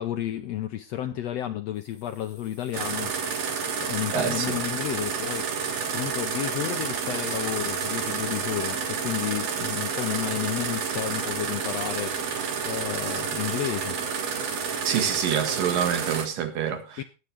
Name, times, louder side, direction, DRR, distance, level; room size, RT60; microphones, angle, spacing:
voice 1, 0.0-3.1 3.8-5.4 5.9-12.2 12.6-14.0 17.0-17.1, left 12 dB, 75° left, 1.5 m, -31 dB
sound 1, 1.7-15.3, left 1 dB, 50° left, 9.0 m, -52 dB
sound 2, 2.7-16.3, right 6 dB, 55° right, 2.7 m, -30 dB
voice 2, 4.1-4.6 14.8-17.0, right 8 dB, 90° right, 3.4 m, -26 dB
19.5 x 8.1 x 3.4 m
omnidirectional pair, 3.8 m